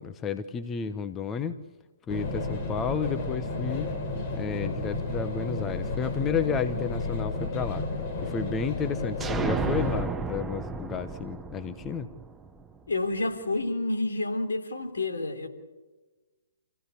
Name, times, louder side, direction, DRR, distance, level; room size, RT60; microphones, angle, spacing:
voice 1, 0.0-1.5 2.1-3.9 4.3-7.8 8.2-12.1, left 6 dB, 15° left, 10 dB, 1.0 m, -31 dB
sound 1, 2.1-10.0, left 2 dB, 35° left, 4.4 m, -32 dB
sound 2, 9.2-12.9, right 5 dB, 10° right, 0.8 m, -33 dB
voice 2, 12.9-15.5, left 2 dB, 75° left, 6 dB, 3.4 m, -29 dB
27.5 x 16.0 x 8.5 m, 1.2 s
figure-of-eight pair, 130°, 0 cm